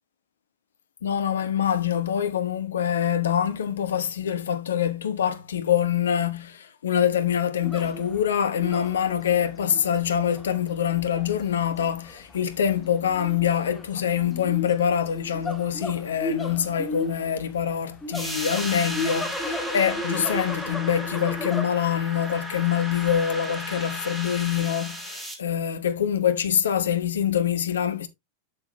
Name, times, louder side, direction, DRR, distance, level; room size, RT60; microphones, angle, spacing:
voice 1, 1.0-28.1, left 9 dB, 65° left, 1.0 m, -25 dB
sound 1, 7.6-21.6, left 2 dB, 10° left, 1.6 m, -35 dB
sound 2, 18.1-25.3, equal, 5° right, 2.5 m, -35 dB
7.6 x 7.2 x 3.0 m
figure-of-eight pair, 90°, 0 cm